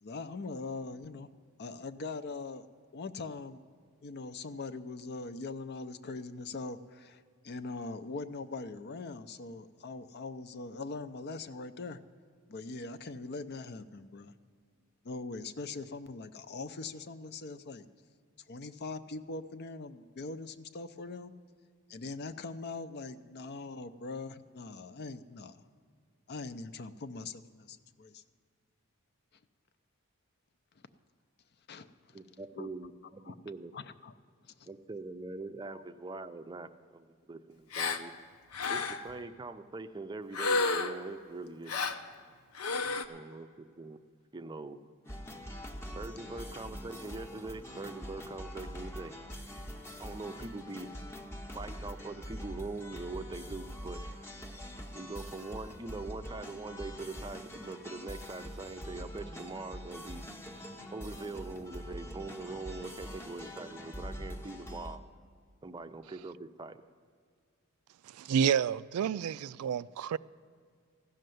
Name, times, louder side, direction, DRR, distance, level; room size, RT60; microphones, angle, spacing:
voice 1, 0.0-1.3 1.6-2.6 2.9-3.6 4.0-12.0 12.5-14.3 15.0-17.9 18.5-21.3 21.9-25.6 26.3-28.2 31.7-32.2 32.5-32.7 33.2-33.4 33.7-34.1 34.5-34.7 35.7-35.8 50.1-50.2, left 3 dB, 50° left, 0.5 m, -42 dB
voice 2, 32.1-33.7 34.7-38.1 38.7-41.7 43.1-44.0 44.3-44.8 45.9-49.1 50.0-50.9 51.5-54.0 54.9-60.2 60.9-65.0 65.6-66.8, right 3 dB, 20° right, 0.5 m, -42 dB
Gasp, 37.7-38.0 38.5-39.1 40.3-41.1 41.7-42.0 42.6-43.0, left 4 dB, 85° left, 0.8 m, -31 dB
sound 1, 45.0-65.0, equal, 10° left, 0.8 m, -44 dB
voice 3, 68.1-70.2, right 8 dB, 85° right, 0.3 m, -29 dB
15.5 x 6.6 x 9.2 m
head